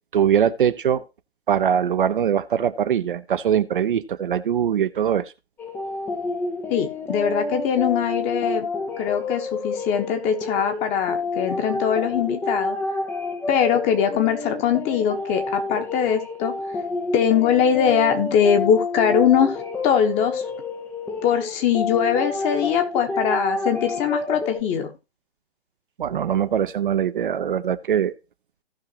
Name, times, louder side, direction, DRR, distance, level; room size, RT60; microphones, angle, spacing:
voice 1, 0.1-1.0 1.5-5.2 26.0-28.1, right 9 dB, 55° right, 0.7 m, -22 dB
sound 1, 5.6-24.6, left 3 dB, 5° left, 0.6 m, -29 dB
voice 2, 6.7-8.7 9.0-12.8 13.5-16.5 17.1-20.4 21.2-24.9, left 8 dB, 20° left, 1.2 m, -22 dB
16.5 x 5.7 x 2.9 m
figure-of-eight pair, 125°, 32 cm